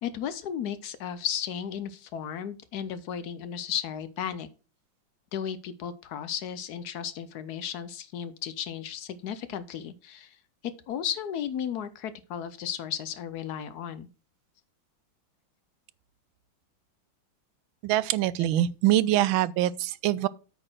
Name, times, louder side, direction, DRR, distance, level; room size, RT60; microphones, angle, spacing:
voice 1, 0.0-4.5 5.3-10.4 10.6-14.1 18.4-18.5, left 9 dB, 70° left, 1.0 m, -34 dB
voice 2, 17.8-20.3, right 13 dB, 85° right, 1.4 m, -24 dB
8.8 x 4.3 x 6.2 m
omnidirectional pair, 2.2 m